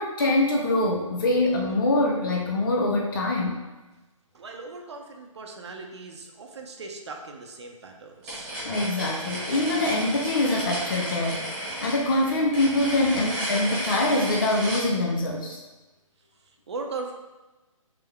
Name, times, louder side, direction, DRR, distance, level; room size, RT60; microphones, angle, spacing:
voice 1, 0.0-3.6 8.6-11.4 11.8-15.6, left 2 dB, 40° left, -1 dB, 0.4 m, -24 dB
voice 2, 4.3-8.5 16.4-17.1, right 3 dB, 55° right, 2 dB, 0.6 m, -38 dB
sound 1, 8.2-14.9, equal, 15° right, 1.4 m, -33 dB
3.6 x 3.3 x 3.3 m, 1.1 s
hypercardioid pair, 170°, 18 cm